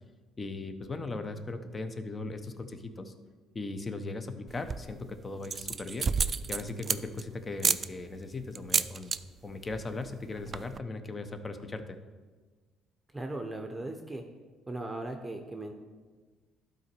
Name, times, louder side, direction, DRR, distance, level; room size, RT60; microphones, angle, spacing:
voice 1, 0.4-3.1 3.5-6.1 6.5-9.1 9.4-12.0, left 3 dB, 30° left, 9 dB, 0.8 m, -38 dB
sound 1, 4.5-5.0 5.4-7.2 7.6-7.9 8.6-9.2 9.5-9.8 10.1-10.2 10.4-10.8, right 5 dB, 40° right, 0.3 m, -30 dB
voice 2, 13.1-14.2 14.7-15.7, right 2 dB, 10° right, 4 dB, 0.8 m, -38 dB
12.0 x 4.0 x 4.5 m, 1.4 s
supercardioid pair, 80°, 0 cm